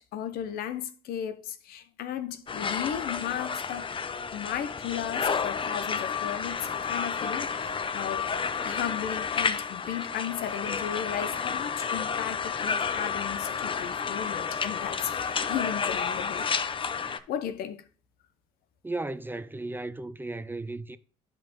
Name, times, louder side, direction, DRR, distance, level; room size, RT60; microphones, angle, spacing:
voice 1, 0.0-4.0 4.3-8.3 8.6-16.7 17.3-17.8, left 10 dB, 75° left, 0.7 m, -35 dB
sound 1, 2.5-17.2, left 6 dB, 35° left, 0.6 m, -31 dB
voice 2, 18.8-21.0, right 2 dB, 15° right, 0.5 m, -35 dB
10.5 x 5.3 x 3.1 m
supercardioid pair, 65°, 16 cm